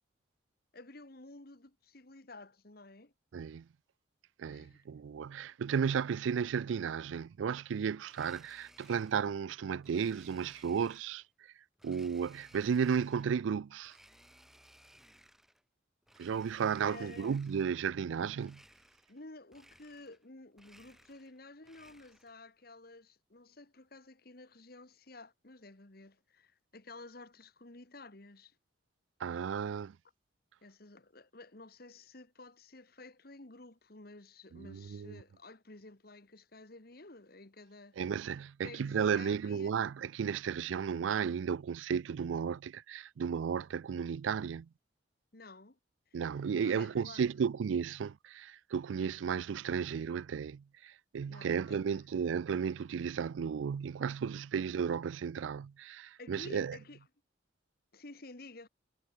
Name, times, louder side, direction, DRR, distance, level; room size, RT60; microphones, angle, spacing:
voice 1, 0.7-3.1 4.5-5.0 8.9-9.0 16.8-17.4 19.1-28.6 30.6-38.0 38.6-39.8 45.3-45.8 46.1-46.2 46.6-47.3 51.3-52.0 56.2-57.0 57.9-58.7, left 2 dB, 50° left, 1.7 m, -52 dB
voice 2, 3.3-3.6 4.4-11.2 11.8-14.0 16.2-18.6 29.2-29.9 34.5-35.2 38.0-44.7 46.1-56.8, right 7 dB, 80° right, 0.4 m, -34 dB
Domestic sounds home sounds, 8.0-9.3 9.8-11.3 11.8-13.4 13.8-15.6 16.0-17.8 18.4-19.2 19.5-20.3 20.5-22.4, equal, ahead, 2.5 m, -61 dB
head